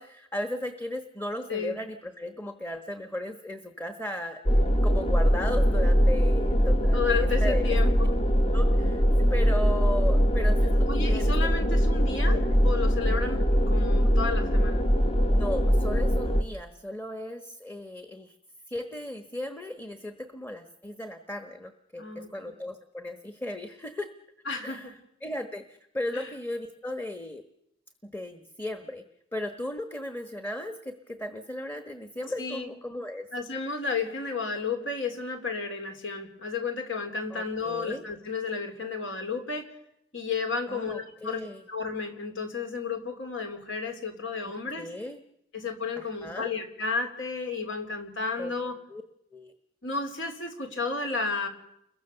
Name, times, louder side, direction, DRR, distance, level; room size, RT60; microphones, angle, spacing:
voice 1, 0.0-7.8 8.5-11.3 12.3-12.6 15.3-18.4 18.7-24.1 24.6-24.9 25.2-27.4 28.0-29.0 29.3-33.3 37.3-38.0 40.7-41.6 44.4-45.2 46.0-46.5 48.4-48.5 48.9-49.0 49.3-49.5, left 1 dB, 10° left, 7 dB, 1.2 m, -36 dB
sound 1, 4.5-16.4, equal, 30° left, 1.3 m, -22 dB
voice 2, 6.9-8.1 10.9-14.8 22.0-22.3 24.5-24.9 26.1-26.3 32.4-32.7 33.3-39.7 40.1-41.4 41.7-44.9 45.5-48.8 49.8-51.5, left 4 dB, 70° left, 5 dB, 3.8 m, -32 dB
29.5 x 22.5 x 6.9 m, 0.81 s
head